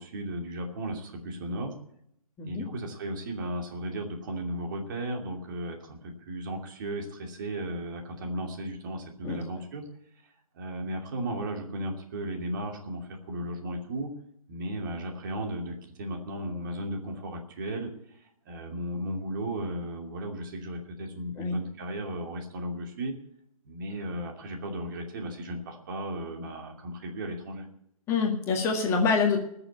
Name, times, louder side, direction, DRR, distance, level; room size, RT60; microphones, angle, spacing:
voice 1, 0.0-1.7 2.4-9.9 10.5-14.1 14.5-17.9 18.2-23.1 23.6-27.6, right 1 dB, 35° right, 2 dB, 2.7 m, -35 dB
voice 2, 28.1-29.4, left 5 dB, 15° left, 2 dB, 1.9 m, -26 dB
19.5 x 6.9 x 8.4 m, 0.73 s
figure-of-eight pair, 135°, 18 cm